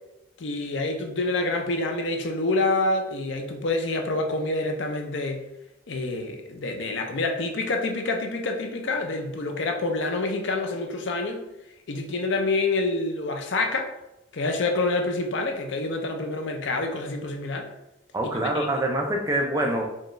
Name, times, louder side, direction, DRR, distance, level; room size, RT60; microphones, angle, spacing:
voice 1, 0.4-5.4 5.9-11.4 11.9-13.9 14.3-17.7 18.2-18.7, left 2 dB, 70° left, 4 dB, 0.5 m, -27 dB
voice 2, 18.1-19.9, right 1 dB, 20° right, 1 dB, 0.5 m, -25 dB
4.4 x 2.3 x 3.0 m, 0.90 s
head